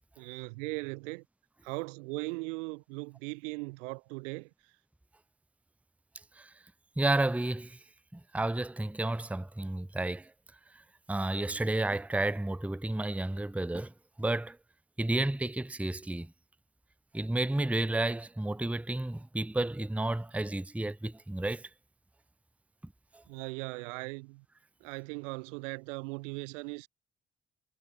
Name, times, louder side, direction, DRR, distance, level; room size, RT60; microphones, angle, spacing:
voice 1, 0.2-1.2 1.6-4.5 23.3-24.4 24.8-26.9, right 28 dB, 75° right, 1.7 m, -39 dB
voice 2, 7.0-7.8 8.1-10.3 10.7-10.8 11.1-13.9 14.2-14.6 15.0-16.3 17.1-21.7 23.1-23.2, right 2 dB, 5° right, 0.9 m, -31 dB
figure-of-eight pair, 45°, 37 cm